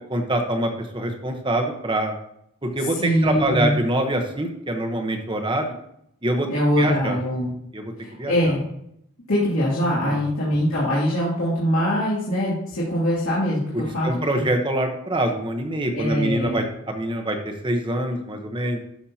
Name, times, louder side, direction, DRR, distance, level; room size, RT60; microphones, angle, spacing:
voice 1, 0.1-2.1 2.7-5.7 6.2-6.5 6.8-7.2 7.7-8.3 10.0-10.2 14.0-18.8, right 1 dB, 20° right, 4 dB, 1.0 m, -25 dB
voice 2, 3.0-3.7 6.5-7.5 8.0-8.6 9.3-14.4 15.9-16.6, equal, 70° left, -9 dB, 2.7 m, -23 dB
13.0 x 6.3 x 2.8 m, 0.75 s
head